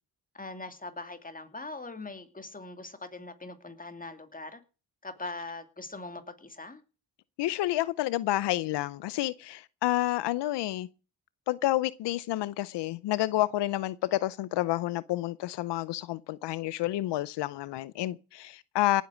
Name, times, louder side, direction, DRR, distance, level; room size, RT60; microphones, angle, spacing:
voice 1, 0.3-4.6 5.0-6.8, left 2 dB, 20° left, 2.5 m, -41 dB
voice 2, 7.4-10.9 11.5-19.0, left 15 dB, 85° left, 0.6 m, -29 dB
18.0 x 8.3 x 6.3 m
cardioid pair, 80°, 41 cm